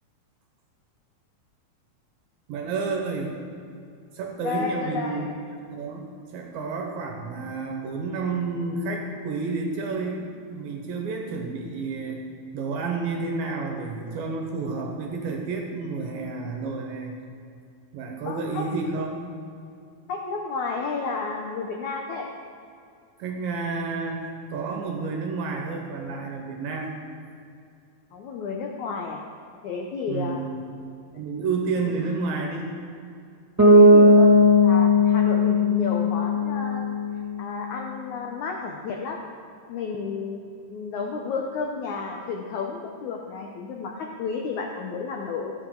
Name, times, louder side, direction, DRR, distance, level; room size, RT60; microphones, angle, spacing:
voice 1, 2.5-3.3 4.1-5.3 5.7-12.3 12.5-17.2 17.9-19.1 23.2-26.9 30.1-30.6 31.1-32.7, right 4 dB, 70° right, 1 dB, 2.7 m, -30 dB
voice 2, 4.4-5.3 18.2-18.6 20.1-22.3 28.1-29.2 29.6-30.4 31.8-32.0 33.7-34.3 34.6-37.0 37.4-39.2 39.7-40.4 40.7-45.5, left 4 dB, 80° left, 1 dB, 1.7 m, -31 dB
Bass guitar, 33.6-37.4, left 1 dB, 10° right, 0.7 m, -17 dB
19.0 x 8.0 x 3.9 m, 2.5 s
omnidirectional pair, 4.5 m